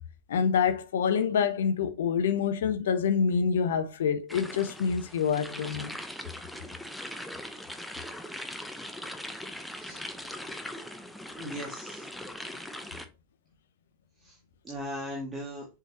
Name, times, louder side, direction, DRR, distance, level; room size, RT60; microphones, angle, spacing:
voice 1, 0.3-6.0, left 7 dB, 60° left, 0.7 m, -26 dB
sound 1, 4.3-13.1, left 1 dB, ahead, 0.8 m, -40 dB
voice 2, 11.4-12.1 14.2-14.4 14.6-15.7, equal, 15° right, 1.9 m, -38 dB
7.1 x 5.0 x 2.8 m
figure-of-eight pair, 90°, 0 cm